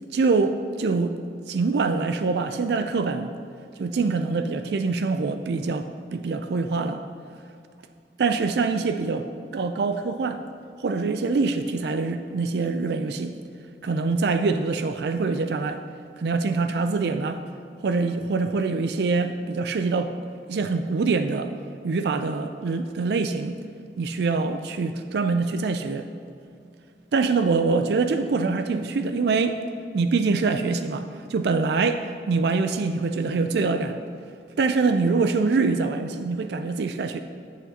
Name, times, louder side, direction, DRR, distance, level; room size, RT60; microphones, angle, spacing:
voice 1, 0.1-1.2 1.5-3.3 3.8-7.0 8.2-9.3 9.5-10.4 10.8-13.4 13.8-15.8 16.2-17.4 17.8-20.1 20.5-21.5 21.8-23.6 24.0-26.1 27.1-29.6 29.9-34.0 34.6-37.2, right 4 dB, 70° right, 8 dB, 0.4 m, -24 dB
14.0 x 8.3 x 2.8 m, 2.4 s
head